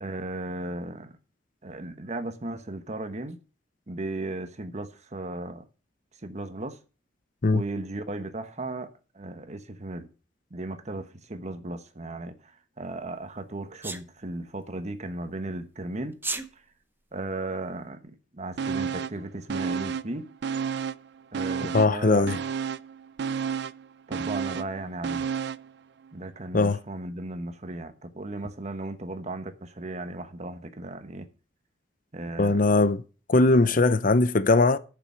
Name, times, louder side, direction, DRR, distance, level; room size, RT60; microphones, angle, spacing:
voice 1, 0.0-1.2 1.6-3.4 3.9-5.6 6.2-6.8 7.5-10.1 10.5-16.2 17.1-20.3 21.3-22.3 24.1-25.3 26.1-31.3 32.1-32.8 33.6-33.8, right 2 dB, 40° right, 1.1 m, -36 dB
Sneeze, 13.8-14.0 16.1-16.5, right 3 dB, 10° right, 0.9 m, -31 dB
sound 1, 18.6-19.2 19.5-21.1 21.3-25.7 26.1-26.2, right 6 dB, 65° right, 0.4 m, -31 dB
voice 2, 21.7-22.4 26.5-26.8 32.4-33.0 33.3-34.8, left 3 dB, 50° left, 0.6 m, -20 dB
8.8 x 6.9 x 6.3 m
head